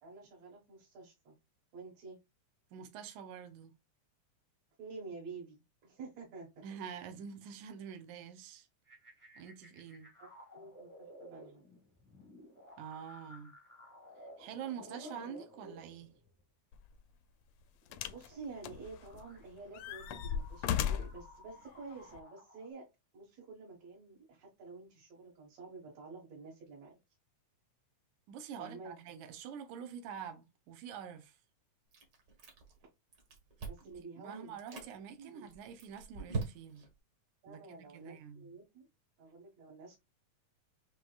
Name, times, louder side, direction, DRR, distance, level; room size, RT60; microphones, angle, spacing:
voice 1, 0.0-1.4 1.7-2.2 4.8-6.6 10.2-11.6 18.1-22.9 23.1-26.9 28.6-29.0 33.7-34.9 35.2-35.5 37.4-38.9 39.2-40.0, right 4 dB, 65° right, 2.6 m, -50 dB
voice 2, 2.7-3.7 6.6-8.7 9.4-10.1 12.8-13.5 14.4-16.1 28.3-31.4 33.8-36.9 37.5-38.5, right 8 dB, 80° right, 2.2 m, -46 dB
sound 1, 8.9-16.4 17.7-22.7, equal, 10° right, 0.5 m, -55 dB
sound 2, 16.7-16.9 17.9-18.3 18.6-19.3 19.7-21.2 22.1-22.2, left 9 dB, 80° left, 1.5 m, -36 dB
Chewing mastication, 31.9-32.8 33.1-34.0 34.5-34.9 35.5-36.9, right 4 dB, 45° right, 1.5 m, -41 dB
7.3 x 2.9 x 2.4 m
omnidirectional pair, 3.4 m